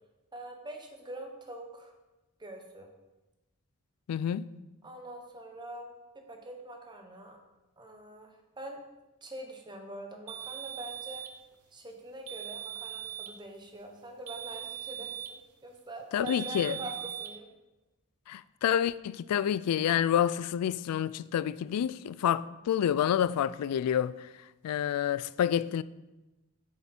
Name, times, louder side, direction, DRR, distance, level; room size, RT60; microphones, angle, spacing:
voice 1, 0.3-1.9 2.4-2.9 4.8-7.4 7.8-8.8 9.2-11.3 11.7-17.5, right 1 dB, 20° right, 1.1 m, -44 dB
voice 2, 4.1-4.5 16.1-16.7 18.3-24.3 24.6-25.8, left 9 dB, 85° left, 0.3 m, -28 dB
sound 1, 10.3-11.4 12.3-13.4 14.3-15.4 16.3-17.3, right 11 dB, 80° right, 0.8 m, -40 dB
8.1 x 7.4 x 4.4 m
head